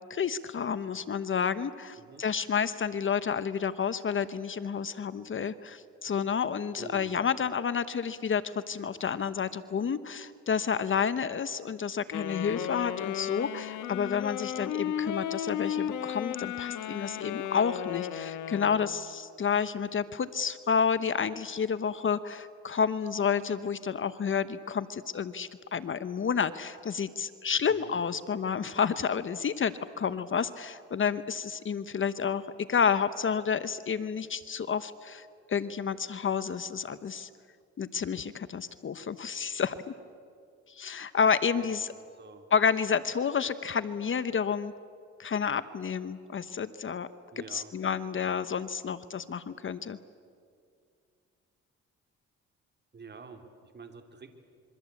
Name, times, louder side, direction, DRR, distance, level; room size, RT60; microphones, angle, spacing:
voice 1, 0.1-32.4 32.7-37.3 37.8-39.8 40.7-41.9 42.5-44.7 45.2-47.1 47.4-50.0, left 6 dB, 40° left, 13 dB, 1.0 m, -30 dB
voice 2, 6.8-7.2 27.7-27.9 41.6-41.8 42.1-42.5 47.3-47.7 52.9-54.3, right 5 dB, 35° right, 5 dB, 3.2 m, -47 dB
Wind instrument woodwind instrument, 12.1-19.1, left 10 dB, 85° left, 1.5 m, -34 dB
27.0 x 23.5 x 8.4 m, 2.3 s
cardioid pair, 90°, 30 cm